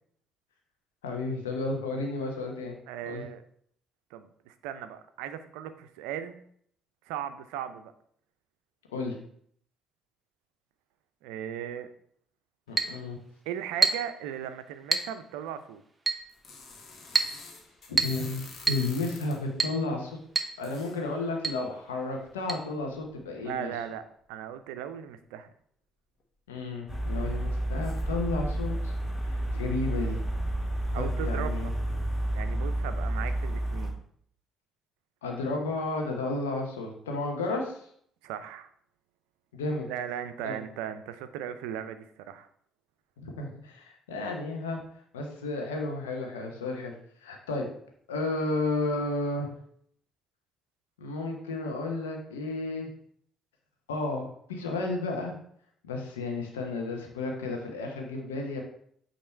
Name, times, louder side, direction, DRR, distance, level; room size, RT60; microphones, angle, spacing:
voice 1, 1.0-2.8 3.0-3.2 8.9-9.2 12.7-13.2 17.9-20.2 20.6-23.7 26.5-28.9 29.2-30.2 30.9-31.7 35.2-37.9 39.5-39.9 40.4-40.6 43.2-44.8 45.1-46.9 47.2-47.7 48.1-49.5 51.0-52.9 53.9-55.4 55.8-58.6, left 2 dB, 80° left, 1 dB, 1.1 m, -32 dB
voice 2, 2.9-3.4 4.1-6.4 7.1-7.9 11.2-11.9 13.5-15.8 23.4-24.0 24.3-25.5 30.9-31.7 32.3-34.0 38.2-38.7 39.9-42.5, right 9 dB, 70° right, 10 dB, 0.5 m, -37 dB
Chink clink, 12.8-13.0 13.8-14.1 14.9-15.1 16.1-16.3 17.2-17.4 18.0-18.2 18.7-18.9 19.6-19.8 20.4-20.6 20.8-20.9 21.4-21.6 22.5-22.6, right 4 dB, 20° right, 0.9 m, -26 dB
sound 1, 16.3-19.6 20.6-21.1 22.3-22.4 23.0-23.1 23.5-23.6 27.8-28.0, left 4 dB, 45° left, 1.3 m, -47 dB
Jackhammer in LA (Binaural), 26.9-33.9, right 1 dB, 20° left, 1.9 m, -30 dB
8.4 x 2.9 x 4.4 m, 0.64 s
figure-of-eight pair, 50°, 0 cm